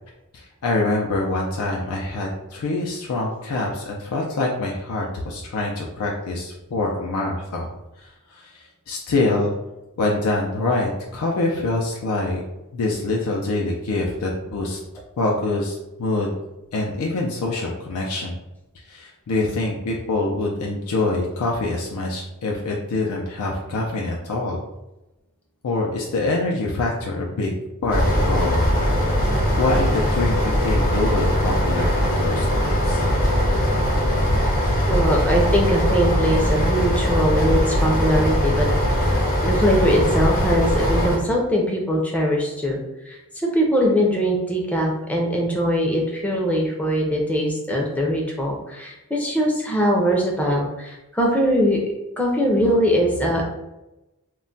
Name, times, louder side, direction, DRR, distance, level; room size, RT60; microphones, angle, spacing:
voice 1, 0.3-7.7 8.0-9.5 10.0-12.4 12.7-14.8 15.2-16.3 16.7-18.4 18.9-24.6 25.6-27.5 27.8-28.6 29.6-33.0, left 2 dB, 80° left, -1 dB, 0.4 m, -25 dB
sound 1, 27.9-41.2, equal, 40° left, 0.8 m, -20 dB
voice 2, 34.9-38.7 39.0-39.2 39.4-42.8 43.1-51.8 52.2-53.5, equal, 5° left, -1 dB, 0.4 m, -21 dB
2.2 x 2.1 x 3.8 m, 0.97 s
head